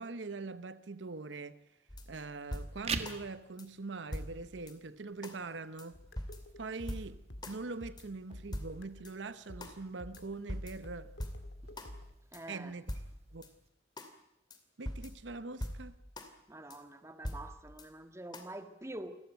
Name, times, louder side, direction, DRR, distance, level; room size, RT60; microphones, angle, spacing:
voice 1, 0.0-1.6 2.1-6.0 6.6-11.1 12.5-12.9 13.3-13.5 14.8-16.0, right 3 dB, 75° right, 0.8 m, -43 dB
sound 1, 1.9-3.2 3.6-3.7 4.1-4.7 5.2-5.4 5.8-5.9 6.2-7.6 8.0-8.1 8.5-9.1 9.6-9.8 10.1-10.2 10.5-11.9 12.3-12.4 12.9-13.5 14.0-14.1 14.5-14.6 14.9-16.3 16.7-16.8 17.2-17.9 18.3-18.4, equal, 25° left, 2.5 m, -43 dB
sound 2, 2.7-13.7, right 5 dB, 35° right, 1.7 m, -48 dB
sound 3, 5.9-9.1 9.5-12.1, left 1 dB, 80° left, 2.1 m, -51 dB
voice 2, 12.3-12.7 16.5-19.1, right 1 dB, 15° right, 1.7 m, -46 dB
29.0 x 14.0 x 9.2 m
head